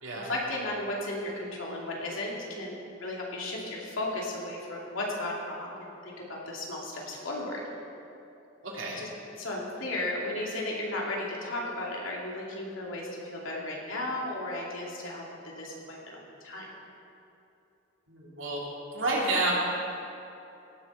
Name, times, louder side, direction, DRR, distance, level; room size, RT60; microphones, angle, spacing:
voice 1, 0.1-7.6 8.9-9.1 9.4-16.7, left 1 dB, 80° left, -3 dB, 2.6 m, -35 dB
voice 2, 8.6-9.0 18.1-18.6 18.9-19.5, right 2 dB, 75° right, -4 dB, 2.9 m, -29 dB
17.0 x 7.0 x 5.6 m, 2.8 s
head